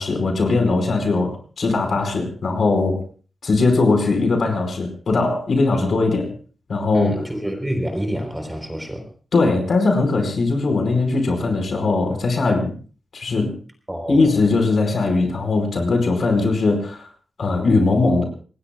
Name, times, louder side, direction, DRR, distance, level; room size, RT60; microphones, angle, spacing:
voice 1, 0.0-3.0 3.4-6.3 6.7-7.2 9.3-12.7 13.1-13.5 14.1-17.1 17.4-18.2, left 3 dB, 65° left, 5 dB, 5.0 m, -20 dB
voice 2, 6.9-9.1 13.9-14.3, equal, 10° right, 5 dB, 3.9 m, -27 dB
27.5 x 20.0 x 2.4 m, 0.40 s
wide cardioid pair, 135°, 0 cm